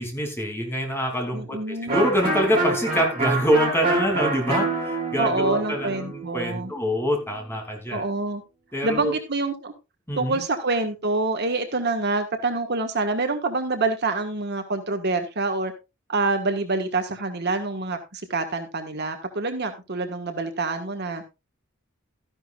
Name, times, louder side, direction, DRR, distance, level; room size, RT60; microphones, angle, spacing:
voice 1, 0.0-8.0 8.7-9.1 10.1-10.4, equal, 10° left, 2 dB, 2.9 m, -25 dB
voice 2, 1.3-2.1 5.2-6.7 7.9-8.4 8.8-9.7 10.2-15.7 16.1-21.2, right 3 dB, 55° right, 6 dB, 1.5 m, -26 dB
Electric guitar, 1.9-7.5, right 2 dB, 25° right, 6.4 m, -27 dB
13.5 x 10.5 x 2.4 m, 0.25 s
head